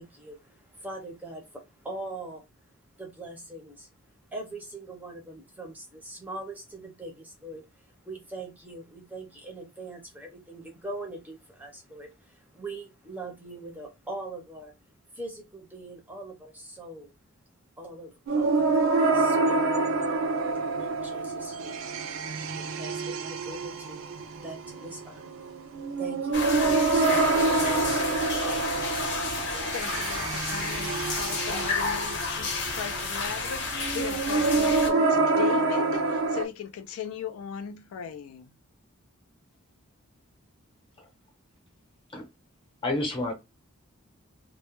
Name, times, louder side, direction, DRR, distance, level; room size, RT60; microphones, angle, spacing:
voice 1, 0.0-2.5 3.0-3.9 4.3-14.7 15.1-17.1 17.8-18.8 19.1-19.8 20.7-29.7, right 2 dB, 5° right, 0.5 m, -42 dB
sound 1, 18.3-36.5, right 3 dB, 65° right, 0.4 m, -27 dB
sound 2, 26.3-34.9, left 4 dB, 55° left, 0.8 m, -31 dB
voice 2, 29.4-38.5, left 8 dB, 75° left, 0.3 m, -38 dB
voice 3, 42.8-43.3, left 2 dB, 25° left, 0.8 m, -29 dB
2.2 x 2.1 x 2.9 m
head